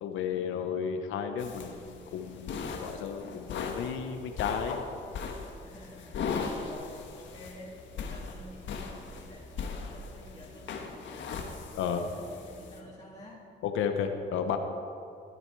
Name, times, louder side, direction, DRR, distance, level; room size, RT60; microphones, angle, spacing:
voice 1, 0.0-4.8 11.7-12.0 13.6-14.6, left 7 dB, 85° left, 6 dB, 0.9 m, -33 dB
sound 1, 1.4-12.8, left 5 dB, 70° left, 1.4 m, -39 dB
voice 2, 5.6-11.5 11.8-13.5, left 1 dB, 20° left, -7 dB, 2.6 m, -50 dB
13.0 x 11.0 x 4.6 m, 2.6 s
cardioid pair, 90°, 20 cm